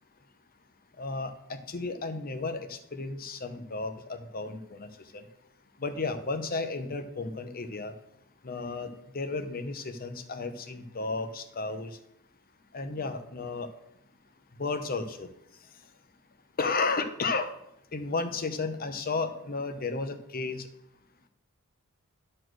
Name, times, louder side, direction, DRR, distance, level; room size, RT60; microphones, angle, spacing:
voice 1, 1.0-4.9 5.8-7.9 8.4-11.9 12.7-13.7 14.6-15.3 16.6-17.5 17.9-20.7, left 3 dB, 45° left, 10 dB, 0.8 m, -33 dB
11.0 x 4.4 x 6.3 m, 0.78 s
head